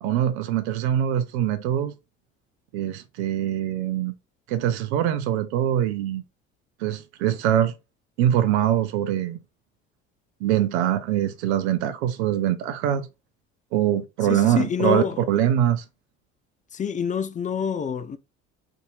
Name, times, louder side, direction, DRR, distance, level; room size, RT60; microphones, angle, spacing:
voice 1, 0.0-1.9 2.7-4.1 4.5-6.2 6.8-7.7 8.2-9.4 10.4-13.1 13.7-15.8, right 11 dB, 65° right, 0.6 m, -23 dB
voice 2, 14.2-15.2 16.7-18.2, left 7 dB, 20° left, 0.4 m, -26 dB
4.5 x 2.7 x 2.3 m
figure-of-eight pair, 55°, 35 cm